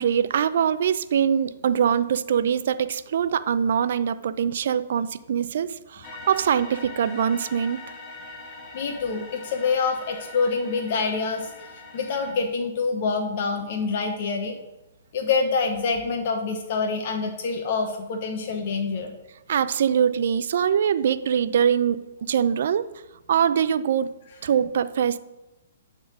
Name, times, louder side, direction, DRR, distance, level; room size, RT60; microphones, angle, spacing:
voice 1, 0.0-7.8 19.5-22.9 23.3-24.1 24.4-25.2, right 8 dB, 65° right, 13 dB, 0.5 m, -23 dB
sound 1, 6.0-12.3, left 3 dB, 25° left, 1.8 m, -42 dB
voice 2, 8.7-11.5 11.9-14.6 15.1-19.1, left 4 dB, 50° left, 3 dB, 1.0 m, -26 dB
9.4 x 3.8 x 6.3 m, 0.99 s
hypercardioid pair, 135°, 0 cm